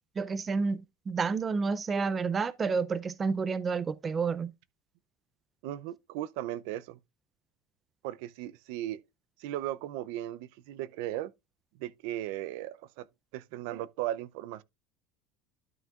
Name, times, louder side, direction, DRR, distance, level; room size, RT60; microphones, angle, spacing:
voice 1, 0.2-4.5, right 5 dB, 20° right, 0.4 m, -30 dB
voice 2, 5.6-7.0 8.0-9.0 9.4-11.3 11.8-13.1 13.3-14.6, right 13 dB, 75° right, 0.5 m, -37 dB
12.0 x 5.6 x 2.4 m
cardioid pair, 145°, 0 cm